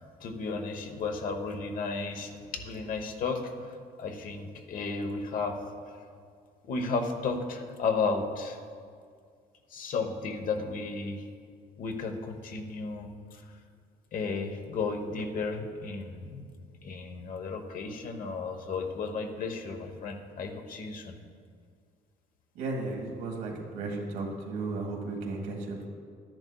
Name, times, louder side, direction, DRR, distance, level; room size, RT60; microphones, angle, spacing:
voice 1, 0.0-5.6 5.9-6.0 6.6-8.6 9.7-11.2 11.8-13.5 14.1-16.5 16.8-21.2, left 4 dB, 55° left, 5 dB, 1.0 m, -34 dB
voice 2, 22.6-25.9, right 3 dB, 85° right, -1 dB, 1.7 m, -34 dB
12.5 x 10.5 x 2.3 m, 2.2 s
cardioid pair, 110°, 17 cm